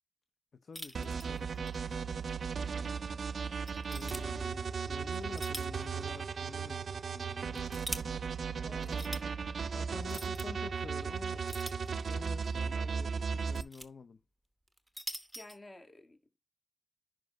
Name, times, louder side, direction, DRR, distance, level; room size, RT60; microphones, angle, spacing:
voice 1, 0.6-9.1 9.7-11.5 11.8-14.2, left 4 dB, 65° left, 0.8 m, -50 dB
sound 1, 0.7-1.8 2.1-2.2 2.8-2.9 3.7-4.2 5.1-5.8 6.2-6.3 7.2-8.0 8.8-9.2 10.0-10.5 11.5-12.3 13.2-13.9 14.7-15.6, equal, ahead, 1.0 m, -44 dB
sound 2, 0.9-13.6, right 5 dB, 75° right, 0.4 m, -36 dB
voice 2, 4.1-4.4 8.6-9.2 15.3-16.4, left 2 dB, 30° left, 2.0 m, -53 dB
10.5 x 5.3 x 3.1 m
wide cardioid pair, 95°, 0 cm